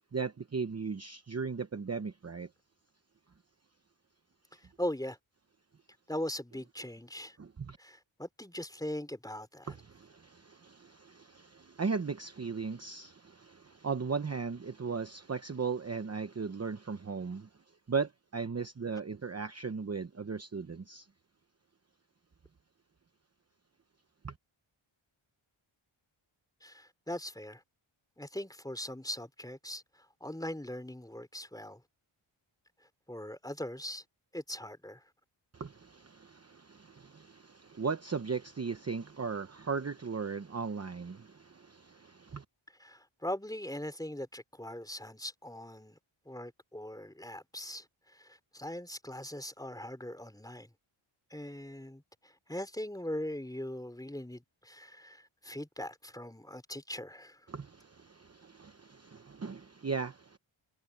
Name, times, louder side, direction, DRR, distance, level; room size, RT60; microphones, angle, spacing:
voice 1, 0.1-2.5 7.4-7.8 9.6-17.5 17.9-21.1 24.2-24.3 35.5-42.4 57.5-60.4, right 5 dB, 30° right, 0.9 m, -37 dB
voice 2, 4.5-5.2 6.1-7.4 7.8-9.7 26.6-27.6 28.2-31.8 33.1-34.0 34.3-35.0 42.8-46.0 46.3-50.7 51.3-57.5, left 1 dB, 5° left, 4.1 m, -41 dB
wide cardioid pair, 135°, 50 cm